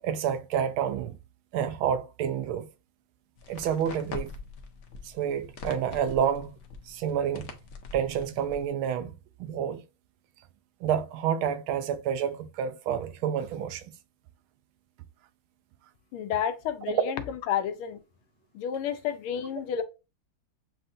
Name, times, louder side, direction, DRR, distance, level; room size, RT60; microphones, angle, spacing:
voice 1, 0.0-1.2 1.5-2.7 3.5-4.3 5.0-6.6 6.9-7.5 7.9-9.8 10.8-13.8 16.9-17.0, right 8 dB, 80° right, 1.4 m, -29 dB
sound 1, 3.4-8.7, left 4 dB, 70° left, 0.7 m, -43 dB
voice 2, 16.1-18.0 18.5-19.8, left 9 dB, 85° left, 1.6 m, -30 dB
7.5 x 2.5 x 2.6 m
omnidirectional pair, 2.3 m